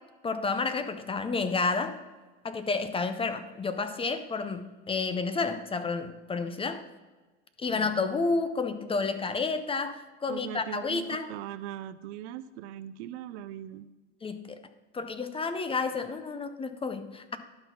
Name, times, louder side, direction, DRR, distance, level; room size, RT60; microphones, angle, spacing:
voice 1, 0.2-2.0 2.4-6.8 7.6-11.3 14.2-14.6 14.9-17.4, left 4 dB, 15° left, 11 dB, 0.5 m, -30 dB
voice 2, 10.3-13.9, right 11 dB, 75° right, 14 dB, 0.6 m, -40 dB
11.5 x 4.1 x 5.6 m, 1.3 s
supercardioid pair, 110°, 33 cm